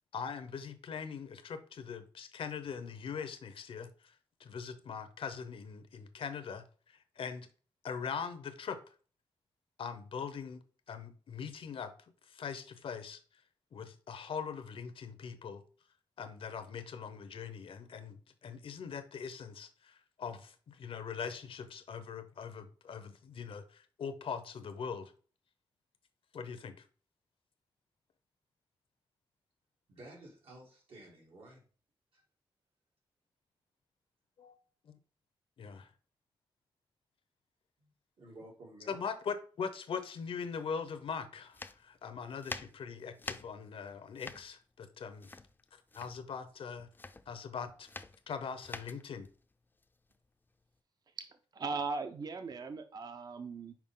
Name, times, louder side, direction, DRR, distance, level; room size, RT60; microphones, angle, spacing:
voice 1, 0.1-4.1 4.4-7.5 7.8-8.8 9.8-10.6 10.9-13.2 13.7-15.6 16.2-25.1 26.3-26.8 34.4-34.5 34.8-35.0 35.6-35.9 38.9-45.4 45.7-46.9 47.3-47.9 48.3-49.3, left 6 dB, 80° left, 0.8 m, -41 dB
voice 2, 29.9-31.6 32.1-32.2 37.8-39.1, right 1 dB, 85° right, 2.5 m, -53 dB
sound 1, 41.5-50.7, left 3 dB, 20° left, 0.4 m, -47 dB
voice 3, 51.5-53.8, right 4 dB, 45° right, 0.5 m, -38 dB
5.9 x 4.6 x 3.7 m
wide cardioid pair, 105°, 9 cm